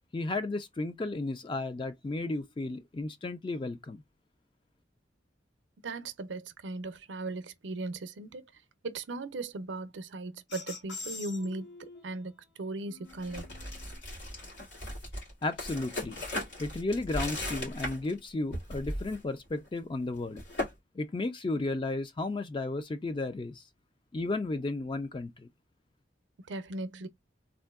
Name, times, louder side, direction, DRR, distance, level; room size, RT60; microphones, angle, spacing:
voice 1, 0.1-4.0 15.4-16.2 16.6-20.4 21.0-23.6 24.1-25.5, left 2 dB, 25° left, 0.4 m, -33 dB
voice 2, 5.8-8.5 8.8-11.7 12.0-12.3 12.6-13.5 26.5-27.1, right 2 dB, 75° right, 0.6 m, -37 dB
sound 1, 10.5-12.2 12.9-14.0, left 4 dB, 65° left, 0.9 m, -45 dB
sound 2, 13.1-18.2 18.5-19.2 19.5-19.7 20.1-20.7, left 1 dB, 90° left, 2.3 m, -37 dB
3.6 x 2.5 x 2.3 m
head